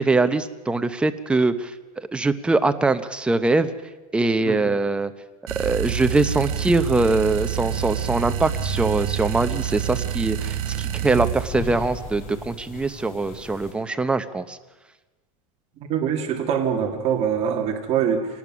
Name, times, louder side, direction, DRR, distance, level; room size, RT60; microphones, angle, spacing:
voice 1, 0.0-3.7 4.1-5.1 5.6-14.6, right 3 dB, 5° right, 9 dB, 0.6 m, -22 dB
sound 1, 5.5-11.5, right 11 dB, 65° right, 0.8 m, -27 dB
sound 2, 5.8-13.7, left 3 dB, 40° left, 5.5 m, -37 dB
voice 2, 15.9-18.3, right 8 dB, 35° right, 1 dB, 2.3 m, -23 dB
24.5 x 19.0 x 6.1 m, 1.2 s
supercardioid pair, 155°, 20 cm